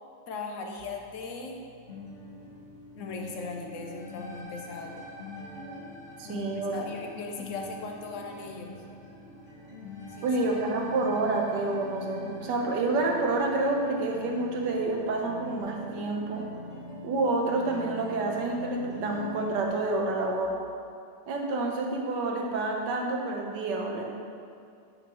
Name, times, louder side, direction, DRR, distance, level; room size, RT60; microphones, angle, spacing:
voice 1, 0.3-1.6 2.9-5.0 6.2-8.8 10.1-10.3, left 3 dB, 60° left, 2 dB, 0.8 m, -38 dB
sound 1, 0.8-20.5, right 5 dB, 50° right, 1.0 m, -58 dB
sound 2, 1.9-19.7, left 2 dB, 35° left, 2.0 m, -44 dB
sound 3, 3.7-15.1, equal, 20° left, 1.2 m, -50 dB
voice 2, 6.2-6.8 10.2-16.5 17.0-20.5 21.3-24.1, right 2 dB, 70° right, 0 dB, 1.5 m, -28 dB
10.5 x 5.4 x 3.1 m, 2.4 s
omnidirectional pair, 2.0 m